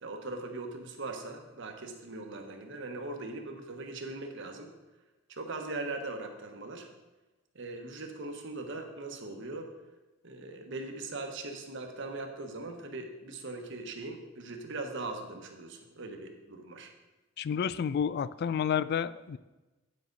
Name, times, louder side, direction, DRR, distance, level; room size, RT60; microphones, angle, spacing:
voice 1, 0.0-4.7 5.3-6.9 7.5-9.7 10.2-16.9, right 2 dB, 65° right, 4 dB, 1.2 m, -40 dB
voice 2, 17.4-19.4, left 7 dB, 55° left, 18 dB, 0.3 m, -30 dB
9.5 x 7.6 x 3.9 m, 1.1 s
head